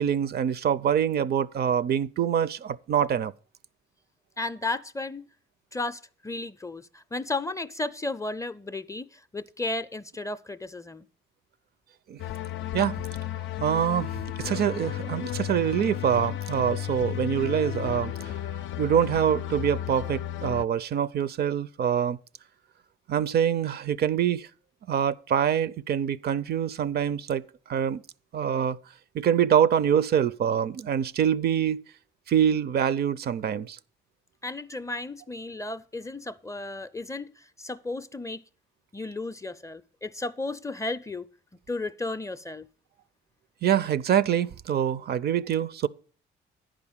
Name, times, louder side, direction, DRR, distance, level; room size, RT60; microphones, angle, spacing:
voice 1, 0.0-3.3 12.1-12.2 12.7-13.0 13.6-18.3 18.8-22.2 23.1-24.5 24.9-28.0 28.3-28.8 29.1-31.8 32.3-33.8 43.6-45.9, right 9 dB, 55° right, 0.4 m, -25 dB
voice 2, 4.4-5.3 5.7-11.1 34.4-37.3 37.6-38.4 38.9-41.3 41.7-42.7, left 2 dB, 15° left, 0.4 m, -34 dB
sound 1, 12.2-20.7, left 12 dB, 75° left, 0.4 m, -33 dB
10.5 x 5.0 x 7.2 m
cardioid pair, 90°, 20 cm